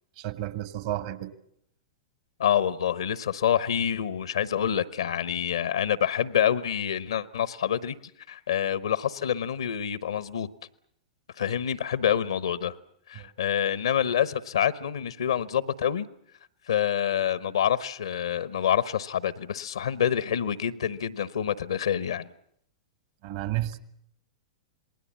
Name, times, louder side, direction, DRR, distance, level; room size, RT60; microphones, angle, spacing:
voice 1, 0.2-1.3 13.2-13.3 23.2-23.8, right 14 dB, 55° right, 12 dB, 1.8 m, -32 dB
voice 2, 2.4-8.0 8.3-10.5 11.4-12.7 13.1-16.1 16.7-22.3, left 9 dB, 70° left, 17 dB, 1.1 m, -27 dB
27.5 x 20.0 x 7.4 m, 0.71 s
figure-of-eight pair, 100°, 3 cm